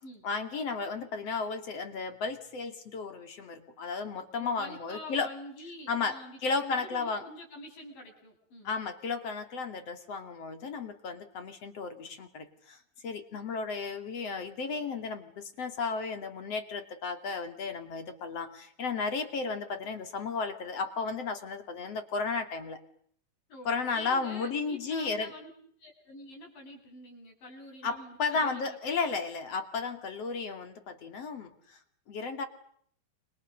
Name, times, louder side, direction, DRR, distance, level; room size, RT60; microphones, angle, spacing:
voice 1, 0.2-5.3 5.9-7.2 8.6-22.8 23.6-25.3 27.8-31.8 32.1-32.5, left 4 dB, 40° left, 8 dB, 3.4 m, -34 dB
voice 2, 4.4-8.7 23.5-25.5 25.8-28.8 29.1-29.2, left 1 dB, 55° left, 2 dB, 9.7 m, -47 dB
30.0 x 26.5 x 6.7 m, 0.64 s
omnidirectional pair, 4.6 m